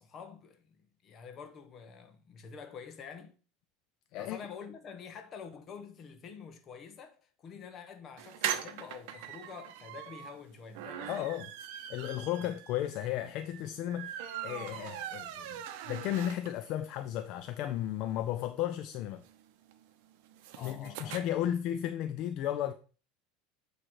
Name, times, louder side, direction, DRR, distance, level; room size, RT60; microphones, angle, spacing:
voice 1, 0.0-3.4 4.2-11.3 12.4-12.5 20.5-21.5, left 6 dB, 30° left, 1.0 m, -48 dB
sound 1, 8.2-16.8 17.1-17.2 17.5-17.6 17.8-21.2, right 10 dB, 65° right, 0.8 m, -41 dB
voice 2, 11.1-11.5 11.9-19.2 20.6-22.7, left 11 dB, 45° left, 0.4 m, -34 dB
8.8 x 3.1 x 4.7 m
supercardioid pair, 155°, 0 cm